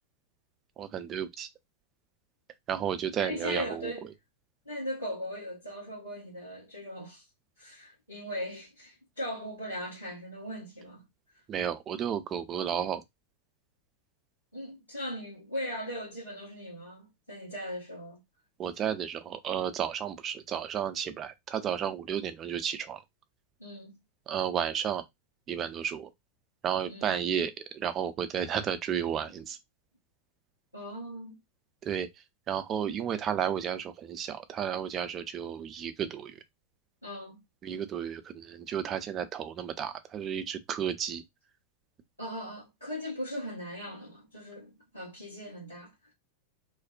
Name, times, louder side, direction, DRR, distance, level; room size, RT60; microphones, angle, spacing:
voice 1, 0.8-1.5 2.7-3.9 11.5-13.0 18.6-23.0 24.3-25.0 25.5-26.1 26.6-29.6 31.8-32.1 32.5-36.3 37.6-41.2, right 8 dB, 30° right, 0.4 m, -32 dB
voice 2, 3.2-4.1 4.6-7.2 7.6-11.0 14.5-18.2 23.6-24.0 26.9-27.2 30.7-31.4 37.0-37.4 42.2-46.1, equal, 85° left, 1.1 m, -39 dB
2.5 x 2.0 x 2.4 m
figure-of-eight pair, 90°, 0 cm